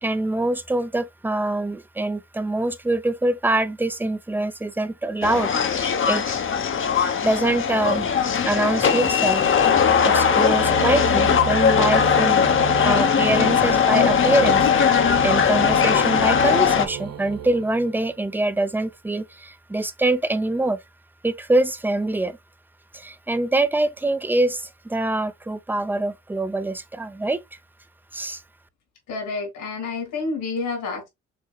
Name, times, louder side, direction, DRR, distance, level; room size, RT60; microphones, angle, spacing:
voice 1, 0.0-6.4 6.9-8.1 8.4-9.4 10.0-12.5 12.8-14.6 14.9-20.8 21.2-22.4 22.9-27.4 28.1-28.4, right 2 dB, 5° right, 0.4 m, -24 dB
sound 1, 5.2-16.9, left 7 dB, 40° left, 0.7 m, -19 dB
sound 2, 7.4-18.3, right 9 dB, 55° right, 0.9 m, -33 dB
voice 2, 29.1-31.1, left 3 dB, 80° left, 2.4 m, -29 dB
6.6 x 2.8 x 2.3 m
cardioid pair, 90°, 30 cm